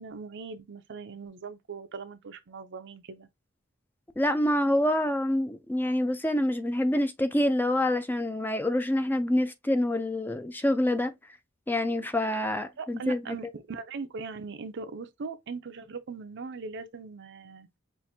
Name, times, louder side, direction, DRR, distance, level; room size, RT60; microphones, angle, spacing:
voice 1, 0.0-3.3 12.8-17.7, right 4 dB, 60° right, 0.5 m, -40 dB
voice 2, 4.2-11.1 11.7-13.2, left 1 dB, 10° left, 0.4 m, -26 dB
5.7 x 2.5 x 2.7 m
head